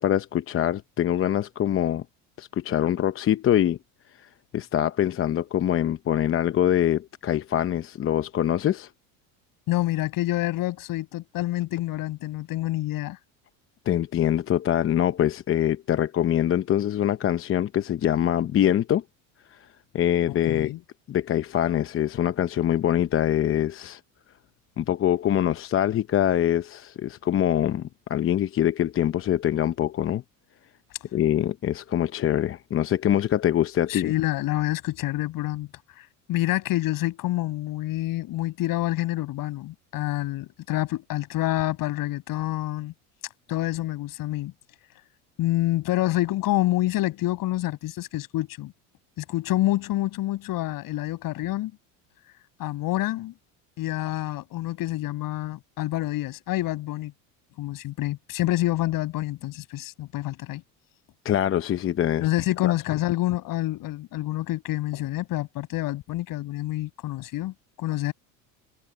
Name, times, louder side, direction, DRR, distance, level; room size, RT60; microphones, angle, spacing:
voice 1, 0.0-2.0 2.4-3.8 4.2-8.9 13.9-19.0 19.5-19.6 19.9-20.7 21.1-24.0 24.8-30.2 31.1-34.1 61.2-62.3 62.6-62.7, left 11 dB, 35° left, 0.8 m, -24 dB
voice 2, 9.7-13.2 20.3-20.8 33.9-35.7 36.0-42.9 43.5-44.5 45.4-48.7 49.2-51.7 52.6-53.3 53.8-57.1 57.6-60.6 62.2-68.1, left 16 dB, 60° left, 6.4 m, -27 dB
supercardioid pair, 105°, 39 cm